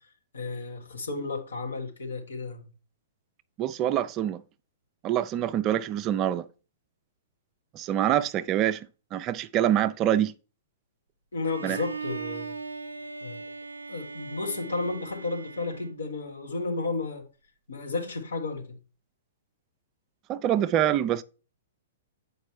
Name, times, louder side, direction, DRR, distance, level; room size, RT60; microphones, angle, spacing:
voice 1, 0.3-2.6 11.3-12.5 13.2-13.5 13.9-17.3 17.7-18.8, left 3 dB, 75° left, 1.5 m, -33 dB
voice 2, 3.6-4.4 5.0-6.5 7.7-10.3 11.6-11.8 20.3-21.2, right 11 dB, 30° right, 0.4 m, -25 dB
Bowed string instrument, 11.4-16.5, right 4 dB, 90° right, 0.4 m, -39 dB
7.3 x 5.0 x 3.2 m
figure-of-eight pair, 115°, 0 cm